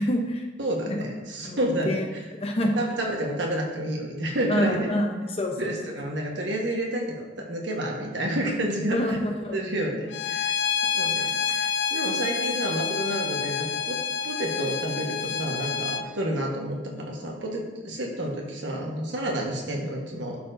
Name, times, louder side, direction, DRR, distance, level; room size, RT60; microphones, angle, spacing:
voice 1, 0.0-0.5 0.9-1.0 1.4-1.6 1.8-2.1 2.4-2.7 4.5-5.7 8.9-9.6, left 1 dB, 35° left, 2 dB, 0.7 m, -26 dB
voice 2, 0.6-1.9 2.7-4.9 5.6-9.2 9.5-10.5 10.9-14.0 14.2-20.4, right 1 dB, 85° right, 0 dB, 1.3 m, -30 dB
Bowed string instrument, 10.1-16.0, left 6 dB, 75° left, 0.4 m, -28 dB
12.0 x 4.3 x 2.6 m, 1.2 s
head